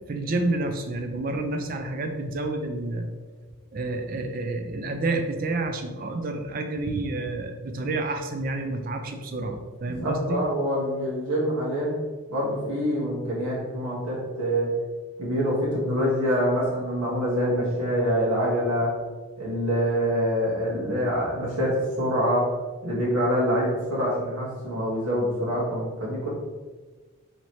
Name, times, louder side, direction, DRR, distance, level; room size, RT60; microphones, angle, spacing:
voice 1, 0.1-3.1 3.7-10.4, right 2 dB, 40° right, 5 dB, 0.4 m, -29 dB
voice 2, 9.9-11.9 12.3-14.7 15.2-18.9 19.4-22.6 22.8-26.3, equal, 90° right, -6 dB, 1.0 m, -25 dB
3.1 x 2.8 x 4.1 m, 1.3 s
head